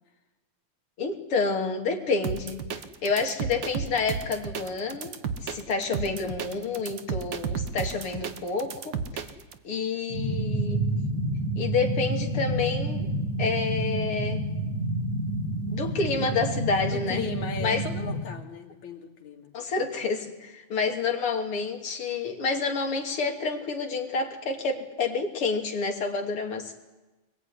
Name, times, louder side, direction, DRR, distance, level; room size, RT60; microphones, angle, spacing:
voice 1, 1.0-2.6 3.0-5.2 5.4-9.2 9.6-10.8 11.6-13.1 13.4-14.4 15.7-17.2 17.6-17.8 19.5-26.8, left 4 dB, 50° left, 3 dB, 3.5 m, -29 dB
sound 1, 2.2-9.6, right 6 dB, 50° right, 1.5 m, -33 dB
sound 2, 10.1-18.2, right 1 dB, 85° right, 7.2 m, -29 dB
voice 2, 16.9-19.5, left 7 dB, 75° left, 3 dB, 3.9 m, -37 dB
24.5 x 21.0 x 9.9 m, 1.1 s
omnidirectional pair, 3.3 m